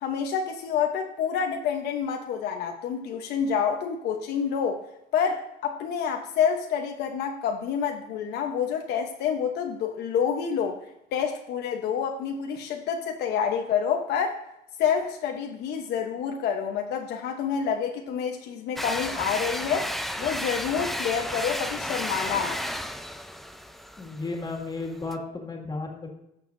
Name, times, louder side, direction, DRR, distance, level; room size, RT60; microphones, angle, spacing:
voice 1, 0.0-4.8 5.1-10.8 11.1-14.4 14.8-19.9 20.2-22.6, left 7 dB, 80° left, 3 dB, 1.0 m, -28 dB
sound 1, 18.8-25.2, equal, ahead, 0.5 m, -33 dB
voice 2, 24.0-26.1, left 3 dB, 25° left, 1 dB, 2.1 m, -34 dB
12.5 x 7.2 x 2.7 m, 0.83 s
cardioid pair, 110°, 17 cm